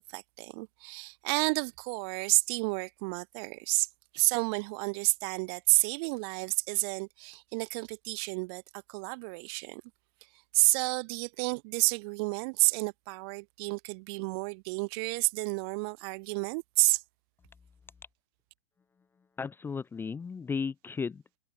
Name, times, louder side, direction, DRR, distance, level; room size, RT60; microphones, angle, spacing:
voice 1, 0.1-3.9 4.1-8.6 8.9-9.8 10.5-17.0, right 31 dB, 45° right, 2.8 m, -30 dB
voice 2, 19.4-21.4, left 5 dB, 15° left, 0.9 m, -35 dB
hypercardioid pair, 110°, 17 cm